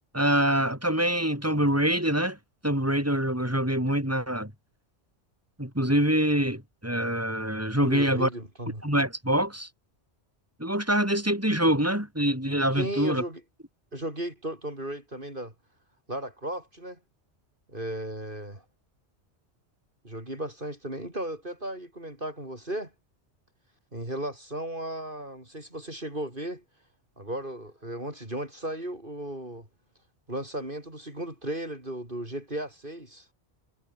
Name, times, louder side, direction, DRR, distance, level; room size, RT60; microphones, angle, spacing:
voice 1, 0.1-2.4 2.6-4.5 5.6-8.3 8.8-9.7 10.6-13.2, right 1 dB, 10° right, 7.1 m, -25 dB
voice 2, 7.8-8.9 12.7-13.4 13.9-15.5 16.1-17.0 17.7-18.6 20.0-22.9 23.9-26.6 27.2-29.7 30.3-33.3, right 1 dB, 45° right, 6.3 m, -35 dB
omnidirectional pair, 1.2 m